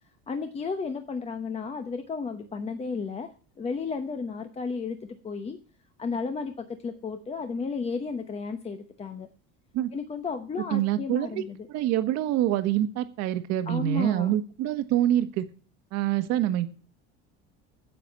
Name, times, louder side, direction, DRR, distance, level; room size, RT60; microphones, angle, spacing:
voice 1, 0.3-3.3 3.6-5.6 6.0-9.3 9.9-11.7 13.7-14.3, left 4 dB, 20° left, 7 dB, 1.0 m, -33 dB
voice 2, 10.7-11.4 11.7-15.5 15.9-16.7, right 12 dB, 60° right, 9 dB, 1.5 m, -26 dB
10.0 x 7.7 x 8.6 m, 0.40 s
cardioid pair, 150°, 30 cm